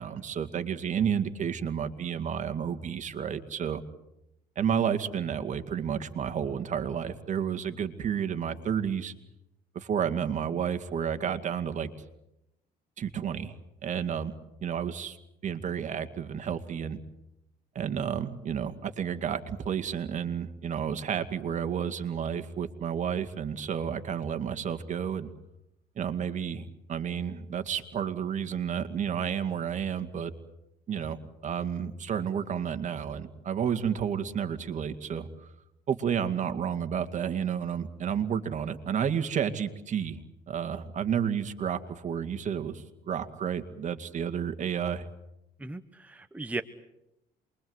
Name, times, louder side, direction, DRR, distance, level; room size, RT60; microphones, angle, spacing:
voice 1, 0.0-3.8 4.6-9.1 9.7-11.9 13.0-13.6 13.8-14.3 14.6-15.2 15.4-17.0 17.7-25.3 26.0-30.3 30.9-31.2 31.4-35.5 35.9-40.2 40.5-45.1, right 8 dB, 45° right, 9 dB, 2.3 m, -31 dB
voice 2, 45.6-46.6, right 2 dB, 10° right, 8 dB, 1.1 m, -36 dB
28.0 x 22.5 x 8.1 m, 0.87 s
cardioid pair, 110°, 17 cm